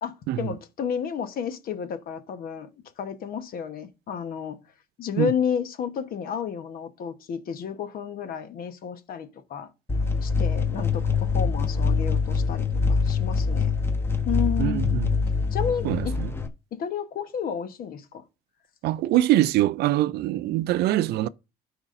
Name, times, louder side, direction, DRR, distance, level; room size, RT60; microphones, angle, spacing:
voice 1, 0.0-2.7 3.0-4.6 5.0-9.7 10.2-13.7 14.3-15.0 15.5-15.9 16.7-18.2, left 7 dB, 60° left, 1.1 m, -31 dB
sound 1, 9.9-16.5, left 5 dB, 15° left, 1.0 m, -24 dB
voice 2, 14.6-15.1 15.8-16.3 18.8-21.3, right 14 dB, 75° right, 0.4 m, -23 dB
13.0 x 5.0 x 2.6 m
cardioid pair, 110°, 17 cm